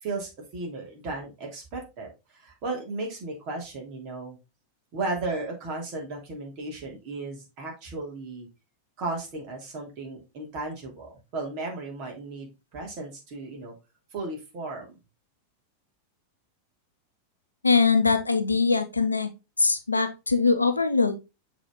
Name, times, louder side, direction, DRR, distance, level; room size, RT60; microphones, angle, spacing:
voice 1, 0.0-4.4 4.9-8.5 9.0-13.7 14.1-15.0, right 3 dB, 40° right, 0 dB, 3.0 m, -35 dB
voice 2, 17.6-19.3 19.6-21.1, left 4 dB, 80° left, 7 dB, 0.9 m, -22 dB
6.9 x 4.1 x 3.8 m, 0.26 s
figure-of-eight pair, 90°, 0 cm